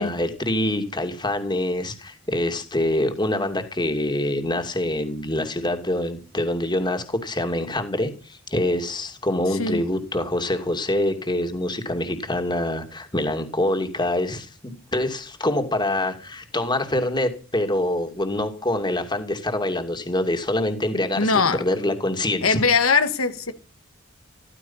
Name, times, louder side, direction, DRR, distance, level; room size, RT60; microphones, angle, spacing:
voice 1, 0.0-22.6, left 1 dB, 20° left, 2.6 m, -25 dB
voice 2, 21.2-21.6 22.4-23.5, left 4 dB, 90° left, 1.8 m, -21 dB
15.0 x 14.5 x 5.7 m
head